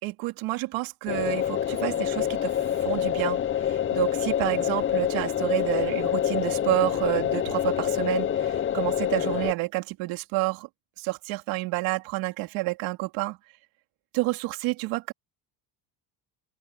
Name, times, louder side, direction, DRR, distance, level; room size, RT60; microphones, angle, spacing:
voice 1, 0.0-10.7 11.0-13.4 14.1-15.1, right 21 dB, 85° right, 3.4 m, -29 dB
sound 1, 1.1-9.5, left 10 dB, 25° left, 0.7 m, -26 dB
open air
cardioid pair, 120°, 46 cm